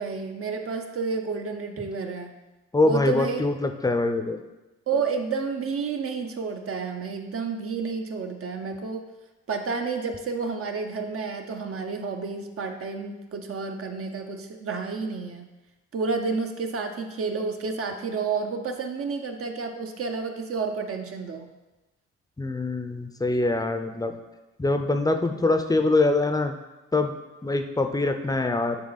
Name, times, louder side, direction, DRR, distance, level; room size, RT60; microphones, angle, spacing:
voice 1, 0.0-2.3 2.8-3.4 4.9-9.1 9.5-15.5 15.9-21.5, right 4 dB, 50° right, 5 dB, 0.8 m, -30 dB
voice 2, 2.7-4.4 22.4-24.1 24.6-26.5 26.9-27.1 27.4-28.8, left 2 dB, 10° left, 6 dB, 0.6 m, -24 dB
9.9 x 3.5 x 4.1 m, 1.1 s
cardioid pair, 90°, 30 cm